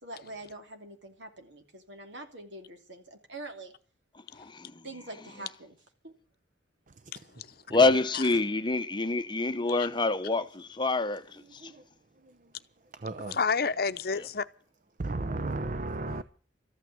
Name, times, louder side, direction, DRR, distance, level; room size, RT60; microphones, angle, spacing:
voice 1, 0.0-3.7 4.8-5.7 6.0-6.1 8.3-8.4, right 2 dB, 80° right, 2.8 m, -44 dB
voice 2, 4.1-4.9 7.7-11.7, left 3 dB, 25° left, 0.8 m, -27 dB
voice 3, 7.1-7.6 8.1-8.2 9.7-9.9 13.3-14.5 16.1-16.2, left 5 dB, 55° left, 0.7 m, -31 dB
voice 4, 11.4-11.9 12.1-12.5 13.0-13.4 15.0-16.2, right 2 dB, 45° right, 0.7 m, -36 dB
14.0 x 9.0 x 9.3 m
head